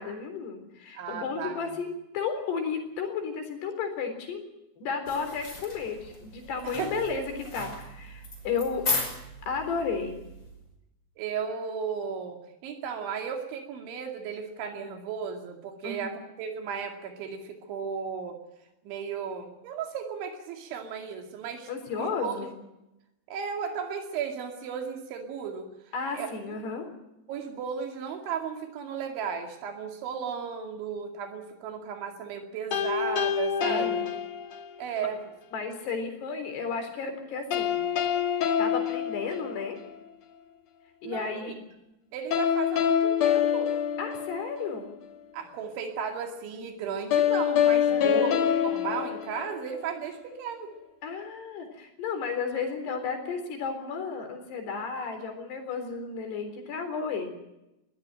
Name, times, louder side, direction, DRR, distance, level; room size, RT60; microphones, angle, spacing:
voice 1, 0.0-1.9 2.1-4.4 4.8-8.8 9.5-10.2 15.8-16.1 21.7-22.5 25.9-26.9 33.6-34.0 35.0-35.1 35.5-37.8 38.6-39.8 41.0-41.5 44.0-44.9 47.9-48.2 51.0-57.3, left 5 dB, 65° left, 6 dB, 5.8 m, -33 dB
voice 2, 1.0-1.7 6.6-7.1 11.2-18.4 18.8-22.4 23.3-25.7 26.1-26.3 27.3-34.0 34.8-35.2 41.0-41.5 42.1-43.8 45.3-50.7, right 6 dB, 90° right, 3 dB, 4.8 m, -35 dB
sound 1, 5.1-10.7, left 2 dB, 25° left, 5.8 m, -36 dB
sound 2, 32.7-34.9 37.5-39.9 42.3-44.8 47.1-49.9, left 9 dB, 85° left, 1.5 m, -26 dB
21.5 x 16.5 x 8.9 m, 0.91 s
omnidirectional pair, 5.2 m